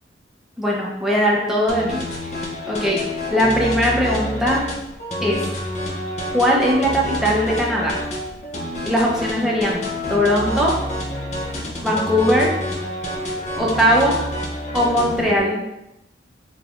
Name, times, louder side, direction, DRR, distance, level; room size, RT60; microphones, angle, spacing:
voice 1, 0.6-2.0 2.7-3.0 3.3-4.6 5.2-5.4 6.3-8.0 8.9-10.7 11.8-12.5 13.6-14.2 14.7-15.6, equal, ahead, -4 dB, 0.7 m, -19 dB
sound 1, 1.7-15.4, equal, 40° left, 0.6 m, -28 dB
4.0 x 3.2 x 2.4 m, 0.89 s
head